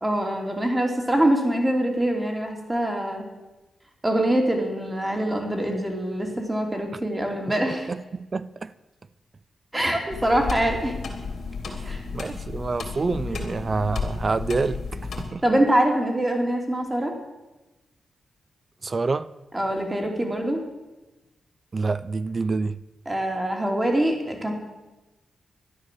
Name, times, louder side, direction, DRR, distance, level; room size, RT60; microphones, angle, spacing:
voice 1, 0.0-3.3 4.0-7.9 9.7-10.9 11.8-12.0 15.4-17.2 19.5-20.6 23.0-24.5, right 1 dB, 15° right, 3.1 m, -24 dB
voice 2, 7.9-8.7 11.7-15.4 18.8-19.3 21.7-22.8, right 3 dB, 35° right, 0.5 m, -27 dB
sound 1, 10.1-15.3, left 4 dB, 65° left, 3.2 m, -33 dB
13.0 x 10.5 x 7.6 m
cardioid pair, 95°, 0 cm